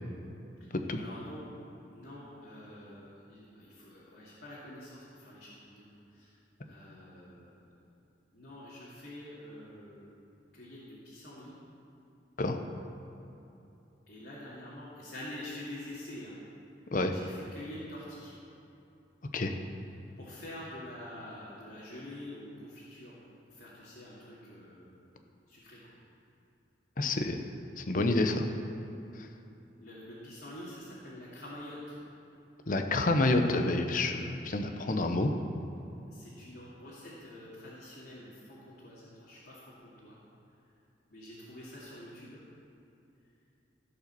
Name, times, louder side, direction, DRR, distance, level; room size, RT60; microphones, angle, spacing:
voice 1, 0.6-1.4 1.9-5.9 6.1-6.4 6.6-7.5 8.3-10.1 10.5-11.5 14.1-16.4 17.0-18.3 20.2-23.2 23.5-25.0 25.5-26.0 29.8-32.0 36.1-40.2 41.1-42.4, left 1 dB, 65° left, -9 dB, 2.4 m, -46 dB
voice 2, 27.0-27.4 27.8-28.5 32.7-35.3, left 2 dB, 45° left, 5 dB, 0.8 m, -28 dB
16.0 x 5.6 x 7.0 m, 2.9 s
head